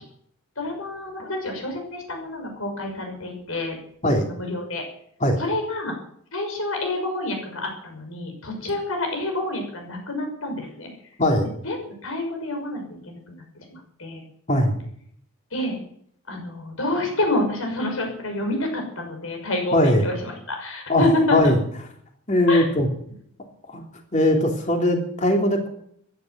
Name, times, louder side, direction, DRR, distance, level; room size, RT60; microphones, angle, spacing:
voice 1, 0.6-3.8 4.2-4.8 5.4-5.9 6.3-10.9 11.6-14.2 15.5-15.8 16.3-21.4 22.5-22.7, left 2 dB, 70° left, 3 dB, 6.2 m, -28 dB
voice 2, 19.7-20.1 20.9-21.0 21.3-21.6 22.3-22.9 23.7-23.8 24.1-25.7, left 1 dB, 35° left, 2 dB, 3.2 m, -19 dB
15.0 x 11.5 x 7.9 m, 0.67 s
head